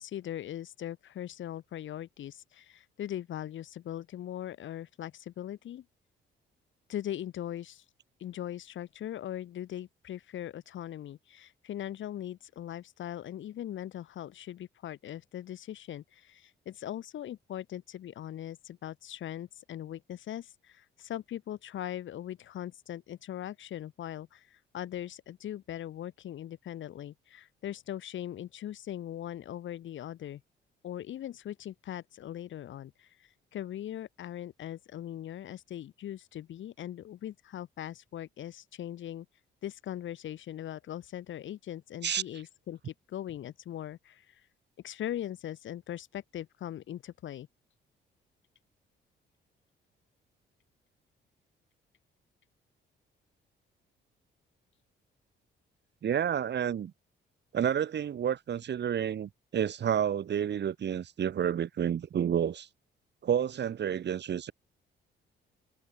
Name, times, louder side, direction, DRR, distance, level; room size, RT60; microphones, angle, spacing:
voice 1, 0.0-5.8 6.9-7.8 8.2-30.4 30.8-33.1 33.5-39.3 39.6-44.4 44.8-47.5, left 11 dB, 75° left, 6.0 m, -40 dB
voice 2, 56.0-56.9 57.5-62.7 63.2-64.5, right 9 dB, 60° right, 6.7 m, -30 dB
cardioid pair, 90°, 20 cm